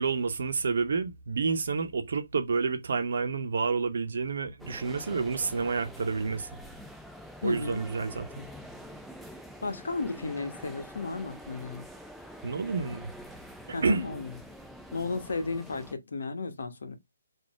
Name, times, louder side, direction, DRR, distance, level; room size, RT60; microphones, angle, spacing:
voice 1, 0.0-6.5 7.4-8.5 12.4-13.1 13.7-14.1, right 4 dB, 60° right, 1.0 m, -29 dB
sound 1, 4.6-15.9, equal, ahead, 0.5 m, -46 dB
voice 2, 7.4-7.8 9.6-11.8 13.7-14.3 14.9-17.0, left 3 dB, 70° left, 1.1 m, -34 dB
4.1 x 2.7 x 4.5 m
figure-of-eight pair, 145°, 0 cm